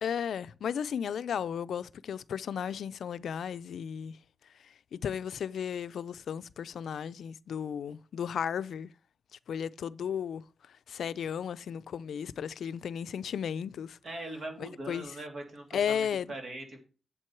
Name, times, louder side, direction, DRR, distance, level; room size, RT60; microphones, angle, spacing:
voice 1, 0.0-4.2 4.9-8.9 9.5-10.4 10.9-14.0 14.6-15.1 15.7-16.3, left 8 dB, 80° left, 0.4 m, -34 dB
voice 2, 14.0-16.0 16.3-16.8, right 2 dB, 50° right, 2.6 m, -41 dB
7.7 x 7.6 x 4.5 m
wide cardioid pair, 135°, 0 cm